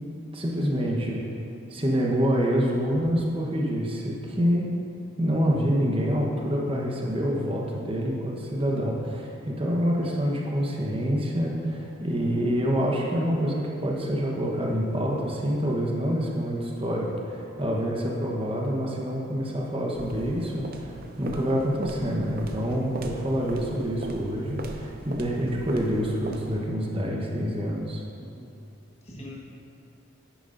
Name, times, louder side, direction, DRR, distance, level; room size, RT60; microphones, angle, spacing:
voice 1, 0.3-1.2 1.7-4.7 5.2-28.0, equal, 25° right, -2 dB, 1.0 m, -27 dB
sound 1, 19.9-26.8, right 2 dB, 45° right, 0.5 m, -40 dB
voice 2, 28.2-28.5 29.0-29.4, equal, 30° left, -4 dB, 1.3 m, -43 dB
10.5 x 9.2 x 2.6 m, 2.7 s
head